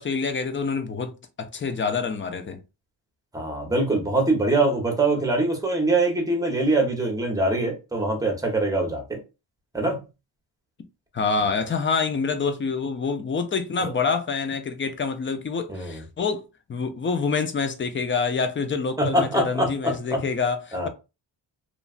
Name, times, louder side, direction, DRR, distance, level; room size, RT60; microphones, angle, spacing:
voice 1, 0.0-2.6 11.1-20.9, left 5 dB, 30° left, 0.5 m, -27 dB
voice 2, 3.3-9.2 9.7-10.0 13.8-13.9 15.7-16.0 19.0-20.2 20.7-20.9, right 2 dB, 10° right, 0.9 m, -23 dB
3.1 x 2.4 x 2.4 m
wide cardioid pair, 120°, 43 cm